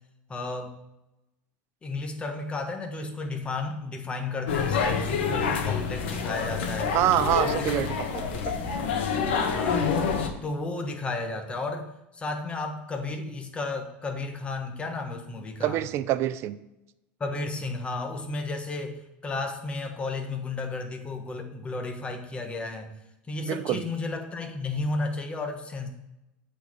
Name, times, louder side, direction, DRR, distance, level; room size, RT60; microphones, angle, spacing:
voice 1, 0.3-0.7 1.8-7.0 7.4-7.9 9.4-9.9 10.4-15.8 17.2-22.9 23.3-25.9, left 3 dB, 20° left, 5 dB, 1.3 m, -33 dB
sound 1, 4.5-10.3, left 5 dB, 85° left, 1.4 m, -27 dB
voice 2, 6.9-8.5 15.6-16.6 23.4-23.8, right 13 dB, 50° right, 14 dB, 0.5 m, -26 dB
8.2 x 4.3 x 6.6 m, 0.91 s
supercardioid pair, 130°, 6 cm